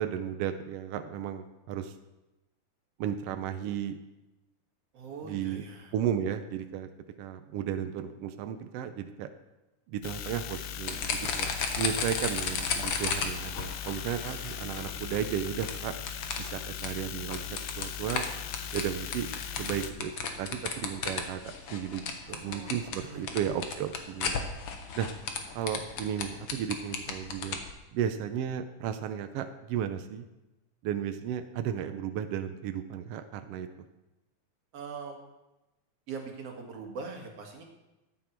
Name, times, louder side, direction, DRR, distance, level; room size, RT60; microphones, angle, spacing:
voice 1, 0.0-1.9 3.0-4.0 5.2-5.6 5.9-6.9 7.2-9.3 9.9-15.9 16.4-18.2 18.7-19.3 19.6-22.0 22.3-24.5 25.0-25.1 25.5-27.6 27.9-30.3 30.8-33.7, right 9 dB, 80° right, 8 dB, 1.4 m, -34 dB
voice 2, 4.9-5.9 22.3-23.4 34.7-35.2 36.1-37.6, right 4 dB, 55° right, 2 dB, 2.7 m, -42 dB
sound 1, 10.0-19.9, left 9 dB, 75° left, 1.5 m, -39 dB
sound 2, 10.9-27.7, left 5 dB, 55° left, 1.8 m, -35 dB
14.5 x 10.0 x 4.5 m, 1.0 s
omnidirectional pair, 3.5 m